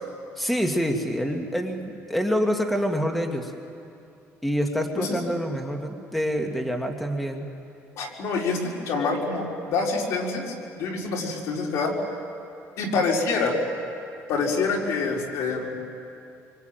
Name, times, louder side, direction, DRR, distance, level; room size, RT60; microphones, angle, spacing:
voice 1, 0.4-3.5 4.4-7.5, equal, ahead, 3 dB, 1.8 m, -26 dB
voice 2, 8.0-11.9 12.8-13.6 14.3-15.7, left 4 dB, 70° left, -1 dB, 4.9 m, -26 dB
26.5 x 24.0 x 9.2 m, 2.6 s
cardioid pair, 135°, 5 cm